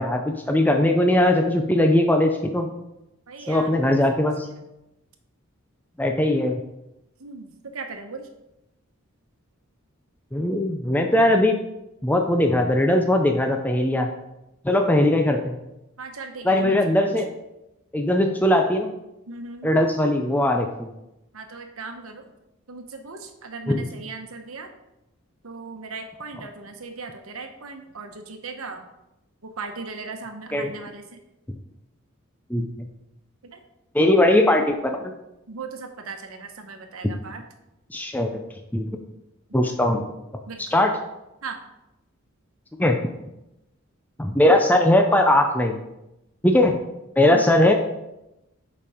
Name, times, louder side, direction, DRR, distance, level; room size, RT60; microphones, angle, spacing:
voice 1, 0.0-2.7 3.5-4.5 6.0-6.6 10.3-11.6 12.0-14.1 14.6-15.5 16.4-17.3 17.9-18.9 19.6-20.9 23.7-23.9 30.5-30.7 32.5-32.9 33.9-35.1 37.9-38.4 38.7-38.9 39.5-40.1 40.6-41.0 42.8-43.0 44.2-45.8 46.4-46.8 47.2-47.7, left 1 dB, 10° left, 3 dB, 0.5 m, -20 dB
voice 2, 3.3-3.9 7.2-8.3 16.0-17.1 19.3-19.7 21.3-22.2 22.7-24.7 25.4-28.8 29.4-31.0 35.5-37.4 40.5-40.6 41.4-41.6 47.3-47.5, right 4 dB, 90° right, 5 dB, 1.0 m, -38 dB
7.0 x 5.3 x 5.0 m, 0.91 s
head